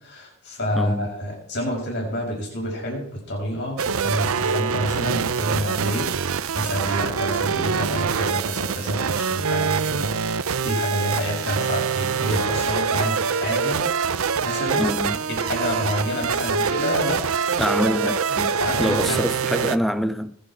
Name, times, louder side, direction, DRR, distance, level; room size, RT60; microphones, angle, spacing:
voice 1, 0.0-13.8 14.4-17.2 18.5-19.3, equal, 50° left, 6.1 m, -28 dB
voice 2, 0.7-1.1 14.8-15.2 17.6-18.5 18.8-20.4, equal, ahead, 0.6 m, -25 dB
sound 1, 3.8-19.8, right 6 dB, 75° right, 0.7 m, -24 dB
20.5 x 10.0 x 4.6 m
head